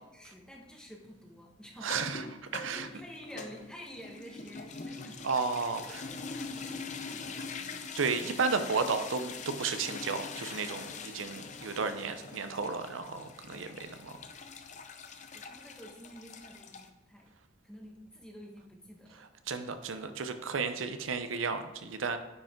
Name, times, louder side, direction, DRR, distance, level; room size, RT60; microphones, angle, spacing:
voice 1, 0.1-1.9 2.7-5.2 5.8-7.9 13.5-13.6 13.9-14.2 15.3-17.3 17.6-19.3, equal, 5° left, -1 dB, 1.1 m, -50 dB
sound 1, 1.8-16.9, left 4 dB, 40° left, 0.6 m, -43 dB
voice 2, 1.8-2.2 2.5-2.9 5.2-6.0 8.0-10.9 11.1-14.1 19.5-22.2, right 4 dB, 85° right, 9 dB, 0.7 m, -33 dB
9.6 x 5.1 x 3.7 m, 1.1 s
head